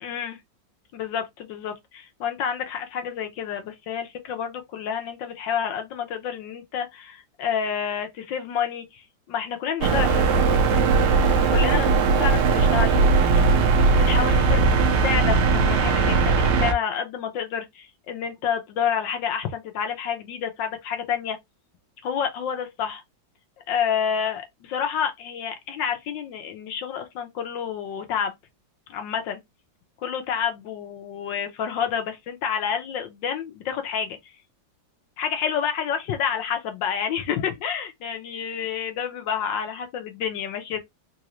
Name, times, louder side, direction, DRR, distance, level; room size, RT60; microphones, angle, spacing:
voice 1, 0.0-0.4 0.9-10.6 11.5-11.9 12.2-13.7 14.0-14.6 15.0-21.4 22.0-23.0 23.7-28.3 28.9-29.4 30.0-34.3 35.2-40.8, left 8 dB, 80° left, 1.6 m, -29 dB
sound 1, 9.8-16.7, right 4 dB, 70° right, 1.3 m, -19 dB
4.0 x 2.6 x 2.9 m
omnidirectional pair, 2.0 m